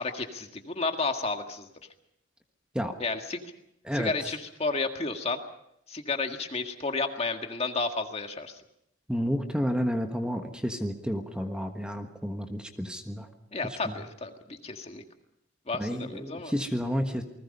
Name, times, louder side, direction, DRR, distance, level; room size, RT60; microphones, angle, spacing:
voice 1, 0.0-1.7 3.0-3.5 3.9-5.4 5.9-8.6 13.5-15.0 15.7-16.5, left 3 dB, 35° left, 5 dB, 1.8 m, -32 dB
voice 2, 9.1-13.3 13.8-13.9 15.8-17.2, equal, 5° right, 5 dB, 1.4 m, -30 dB
29.0 x 20.0 x 5.5 m, 0.77 s
head